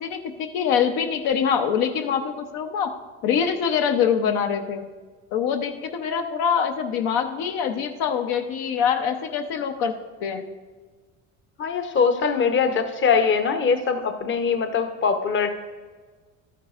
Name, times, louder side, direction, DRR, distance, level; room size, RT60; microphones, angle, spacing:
voice 1, 0.0-2.9 3.2-4.8 5.3-9.9 10.2-10.4, left 7 dB, 65° left, 5 dB, 0.8 m, -24 dB
voice 2, 11.6-15.5, left 5 dB, 30° left, 7 dB, 0.8 m, -22 dB
12.0 x 9.3 x 2.5 m, 1.4 s
supercardioid pair, 95°, 39 cm